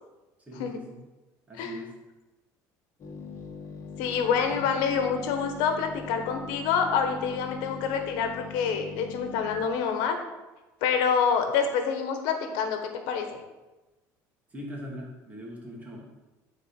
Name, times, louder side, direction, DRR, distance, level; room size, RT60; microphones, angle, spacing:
voice 1, 0.5-1.0 1.5-1.9 4.5-4.6 14.5-16.1, equal, 20° right, -2 dB, 2.6 m, -41 dB
sound 1, 3.0-9.7, left 5 dB, 45° left, 1.4 m, -41 dB
voice 2, 4.0-10.2 10.8-13.4, left 6 dB, 80° left, 6 dB, 1.2 m, -27 dB
10.5 x 4.3 x 5.8 m, 1.1 s
cardioid pair, 125°, 7 cm